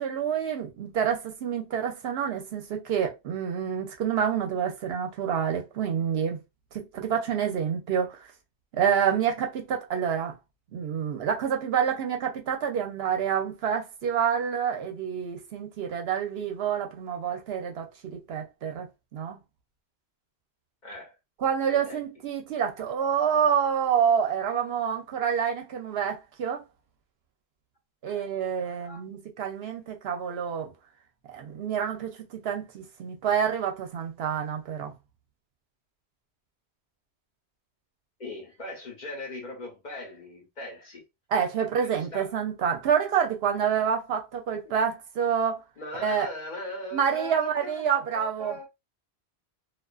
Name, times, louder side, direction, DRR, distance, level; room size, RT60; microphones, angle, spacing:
voice 1, 0.0-6.4 6.7-8.2 8.7-10.4 10.7-18.9 19.1-19.4 21.4-26.6 28.0-30.7 31.3-34.9 41.3-45.6 46.0-46.3 46.9-48.5, right 8 dB, 70° right, 0.8 m, -28 dB
voice 2, 20.8-21.2 21.7-22.0 28.0-29.0 30.0-30.3 38.2-41.0 41.8-42.4 44.6-44.7 45.8-48.7, left 1 dB, 45° left, 0.8 m, -40 dB
2.3 x 2.3 x 2.3 m
omnidirectional pair, 1.1 m